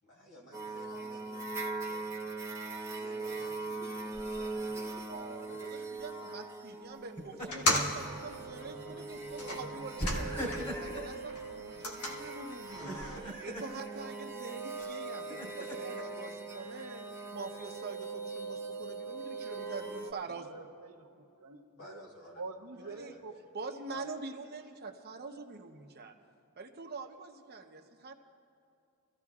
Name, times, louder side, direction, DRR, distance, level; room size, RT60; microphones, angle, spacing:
voice 1, 0.0-2.1 2.9-5.1 9.3-9.8 21.8-22.4 22.8-23.2, left 1 dB, 60° left, -2 dB, 3.1 m, -53 dB
sound 1, 0.5-20.1, right 3 dB, 10° right, 0.8 m, -41 dB
Laughter, 4.1-4.7 7.0-7.9 8.3-8.5 10.0-11.1 12.7-13.7 14.8-16.0, equal, 30° left, 2.9 m, -40 dB
voice 2, 5.1-10.3 10.8-20.6 22.9-23.1 23.5-26.1 26.6-28.1, right 3 dB, 45° right, 5 dB, 0.9 m, -45 dB
sound 2, 7.4-10.9 11.2-13.2, left 1 dB, 85° left, 1.7 m, -36 dB
voice 3, 20.3-22.0 22.4-24.2, right 3 dB, 75° right, 4 dB, 1.0 m, -47 dB
25.0 x 15.0 x 2.4 m, 2.6 s
head